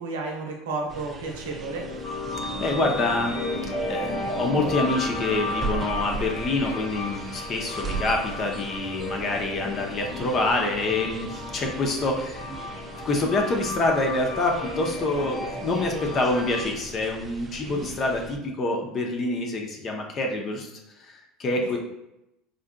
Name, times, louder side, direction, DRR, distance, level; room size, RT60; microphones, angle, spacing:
voice 1, 0.0-1.8 17.6-17.9, right 3 dB, 85° right, 1 dB, 0.7 m, -32 dB
sound 1, 0.9-18.4, right 4 dB, 35° right, 0.4 m, -39 dB
sound 2, 1.3-16.7, left 2 dB, 65° left, 1.0 m, -34 dB
voice 2, 2.6-3.4 3.9-12.5 13.0-20.7 21.0-21.8, left 2 dB, 40° left, 2 dB, 0.6 m, -26 dB
3.8 x 2.4 x 2.2 m, 0.87 s
supercardioid pair, 90°, 0 cm